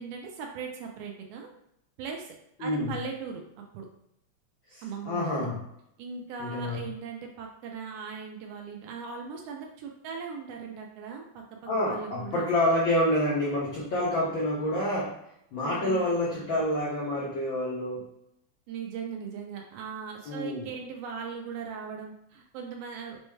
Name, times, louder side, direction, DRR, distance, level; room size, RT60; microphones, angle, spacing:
voice 1, 0.0-1.5 2.0-2.3 2.6-3.4 3.7-3.9 4.8-5.5 6.0-11.4 11.8-12.5 15.5-16.1 18.7-23.2, right 6 dB, 85° right, 1 dB, 1.3 m, -39 dB
voice 2, 2.6-3.0 4.7-5.6 6.4-6.8 11.6-15.1 15.5-18.0 20.2-20.7, left 1 dB, 85° left, -5 dB, 1.0 m, -28 dB
5.3 x 2.2 x 3.1 m, 0.78 s
omnidirectional pair, 3.3 m